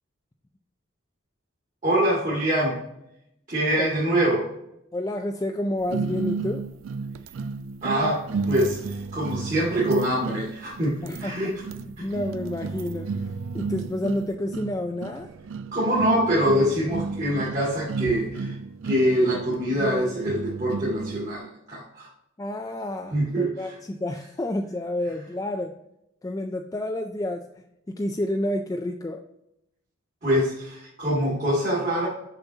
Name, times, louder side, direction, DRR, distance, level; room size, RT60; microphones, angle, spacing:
voice 1, 1.8-2.8 3.5-4.5 7.8-11.5 12.0-12.1 15.7-18.6 18.8-22.1 23.1-23.7 30.2-32.1, equal, 40° right, -6 dB, 1.9 m, -24 dB
voice 2, 4.9-6.6 11.0-15.3 22.4-25.7 26.2-29.2, left 1 dB, 15° left, 4 dB, 0.3 m, -30 dB
sound 1, 5.9-21.4, right 4 dB, 80° right, 0.4 m, -33 dB
6.9 x 5.6 x 2.8 m, 0.81 s
head